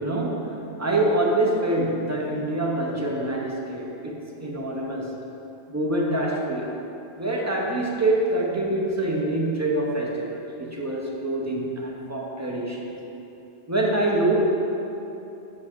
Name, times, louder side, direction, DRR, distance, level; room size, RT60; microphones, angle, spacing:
voice 1, 0.0-5.2 5.7-6.7 7.2-12.9 13.7-14.4, right 1 dB, 20° right, -2 dB, 0.5 m, -25 dB
7.9 x 4.5 x 3.5 m, 2.9 s
omnidirectional pair, 1.1 m